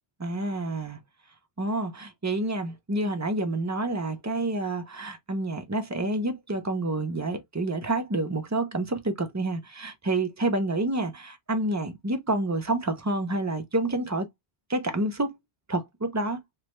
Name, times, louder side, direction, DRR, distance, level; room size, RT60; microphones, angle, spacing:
voice 1, 0.2-1.0 1.6-14.3 14.7-15.4 15.7-16.4, right 2 dB, 25° right, 0.4 m, -28 dB
3.4 x 2.1 x 3.0 m
omnidirectional pair, 1.1 m